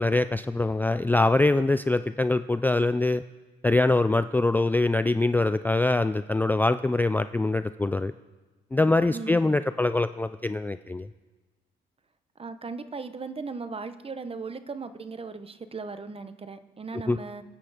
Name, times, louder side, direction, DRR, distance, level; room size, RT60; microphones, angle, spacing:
voice 1, 0.0-3.2 3.6-8.1 8.7-11.1 17.1-17.2, left 2 dB, 10° left, 11 dB, 0.4 m, -23 dB
voice 2, 12.4-17.4, right 4 dB, 30° right, 11 dB, 1.0 m, -37 dB
25.5 x 8.8 x 5.0 m, 1.2 s
cardioid pair, 90°, 20 cm